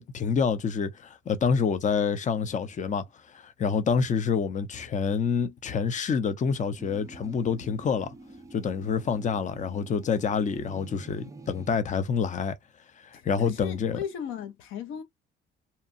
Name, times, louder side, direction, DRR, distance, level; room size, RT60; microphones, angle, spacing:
voice 1, 0.0-8.1 8.5-12.6 13.0-14.0, left 6 dB, 40° left, 0.6 m, -27 dB
sound 1, 6.8-11.8, right 2 dB, 15° right, 0.4 m, -47 dB
voice 2, 13.1-15.0, left 8 dB, 90° left, 0.7 m, -36 dB
2.8 x 2.1 x 2.6 m
cardioid pair, 90°, 20 cm